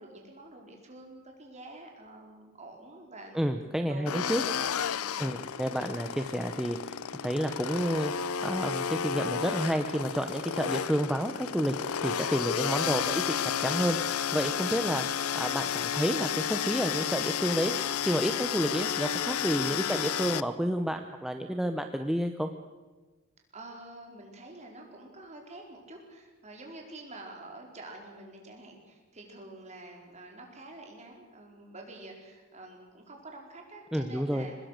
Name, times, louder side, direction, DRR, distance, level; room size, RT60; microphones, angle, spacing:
voice 1, 0.0-4.3 4.6-5.4 19.6-19.9 23.5-34.6, right 2 dB, 30° right, 1 dB, 4.5 m, -48 dB
voice 2, 3.3-4.4 5.2-17.7 18.0-22.5 33.9-34.5, equal, ahead, 6 dB, 0.8 m, -30 dB
sound 1, 4.1-20.4, left 8 dB, 80° left, 0.6 m, -32 dB
24.0 x 20.0 x 6.6 m, 1.2 s
head